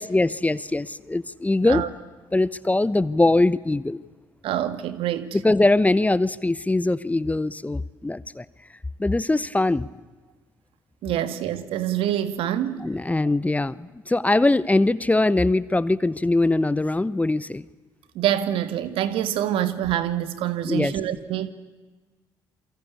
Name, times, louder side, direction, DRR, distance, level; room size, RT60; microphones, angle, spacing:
voice 1, 0.0-1.8 2.3-4.0 5.4-8.4 9.0-9.9 12.8-17.6 20.6-20.9, left 2 dB, 15° left, 1.1 m, -22 dB
voice 2, 4.4-5.4 11.0-12.9 18.2-21.5, right 11 dB, 70° right, 2.0 m, -26 dB
28.5 x 24.0 x 8.5 m
hypercardioid pair, 50°, 10 cm